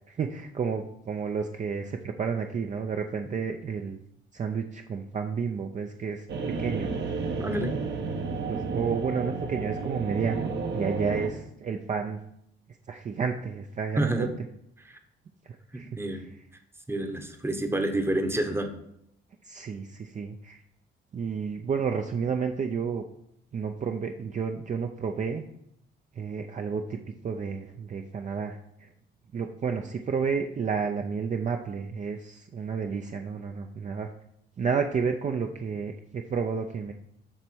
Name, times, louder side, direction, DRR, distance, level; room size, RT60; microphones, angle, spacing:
voice 1, 0.1-4.0 4.3-6.3 6.6-6.9 8.5-12.2 12.9-14.3 15.4-15.9 19.4-20.6 21.1-23.0 23.5-25.4 26.1-28.9 29.3-34.1 34.6-36.9, right 6 dB, 40° right, 4 dB, 0.5 m, -31 dB
sound 1, 6.3-11.3, right 4 dB, 65° right, 1.0 m, -31 dB
voice 2, 7.4-7.7 13.9-14.3 14.8-15.0 15.7-16.2 16.9-18.7, right 1 dB, 10° right, 6 dB, 0.9 m, -28 dB
7.3 x 3.4 x 6.1 m, 0.76 s
cardioid pair, 90°, 20 cm